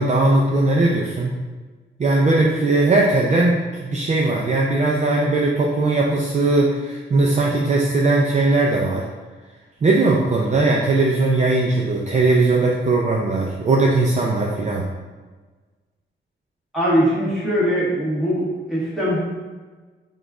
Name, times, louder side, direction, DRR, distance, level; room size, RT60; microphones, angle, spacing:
voice 1, 0.0-1.3 2.0-9.0 9.8-14.8, right 2 dB, 35° right, -2 dB, 0.4 m, -19 dB
voice 2, 16.7-19.2, equal, ahead, -9 dB, 1.5 m, -21 dB
5.0 x 2.4 x 3.6 m, 1.3 s
wide cardioid pair, 145°, 20 cm